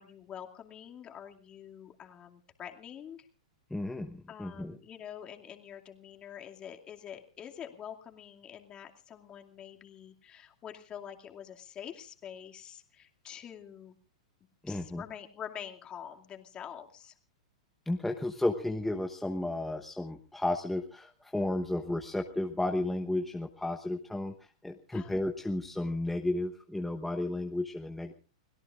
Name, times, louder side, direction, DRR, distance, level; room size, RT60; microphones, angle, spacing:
voice 1, 0.0-3.3 4.3-14.0 14.7-17.1 24.9-25.1, left 9 dB, 25° left, 3 dB, 2.4 m, -46 dB
voice 2, 3.7-4.8 14.6-15.0 17.9-24.3 24.6-28.1, left 1 dB, 5° left, 3 dB, 1.1 m, -33 dB
30.0 x 17.0 x 2.5 m, 0.37 s
hypercardioid pair, 115°, 3 cm